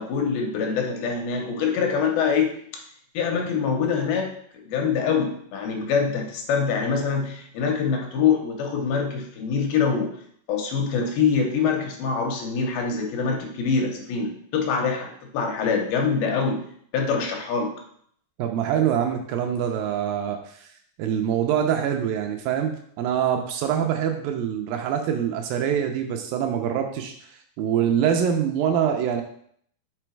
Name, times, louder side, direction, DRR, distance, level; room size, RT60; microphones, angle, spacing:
voice 1, 0.0-2.6 3.1-4.3 4.7-10.1 10.5-16.6 16.9-17.8, left 5 dB, 80° left, 2 dB, 2.7 m, -24 dB
voice 2, 18.4-20.7 21.0-27.1 27.6-29.2, right 9 dB, 80° right, 4 dB, 2.2 m, -24 dB
6.1 x 4.0 x 4.5 m, 0.64 s
omnidirectional pair, 4.3 m